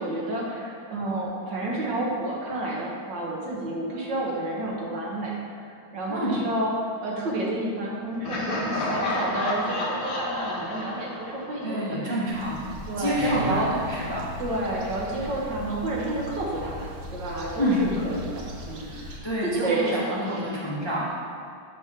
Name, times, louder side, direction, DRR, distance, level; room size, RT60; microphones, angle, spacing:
voice 1, 0.0-5.4 5.9-6.7 7.0-12.2 12.9-13.7 14.4-18.9 19.4-20.4, right 1 dB, 60° right, -3 dB, 1.9 m, -30 dB
Laughter, 8.2-12.1, left 2 dB, 55° left, 1.7 m, -30 dB
voice 2, 11.6-12.6 13.0-14.2 17.6-17.8 19.2-21.1, equal, 15° left, -7 dB, 1.0 m, -28 dB
sound 1, 12.3-19.2, left 1 dB, 90° right, 1.9 m, -38 dB
7.4 x 5.2 x 6.0 m, 2.2 s
omnidirectional pair, 2.2 m